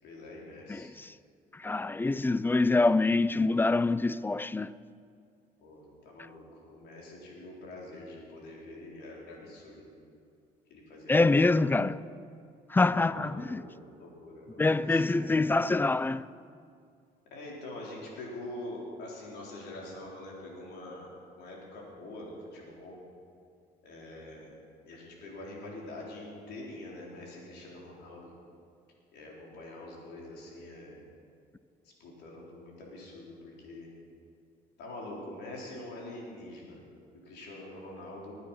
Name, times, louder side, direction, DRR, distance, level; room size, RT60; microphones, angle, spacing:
voice 1, 0.0-0.9 5.6-9.9 10.7-11.6 13.0-15.4 17.3-21.1 21.4-23.0 23.8-24.5 24.8-28.3 29.1-31.0 32.0-33.9 34.8-36.8 37.3-38.3, left 1 dB, 80° left, 4.4 m, -45 dB
voice 2, 0.7-1.1 1.5-4.7 11.1-12.0 12.7-13.6 14.6-16.3, left 3 dB, 10° left, 0.3 m, -25 dB
20.0 x 9.5 x 5.9 m
cardioid pair, 110°, 17 cm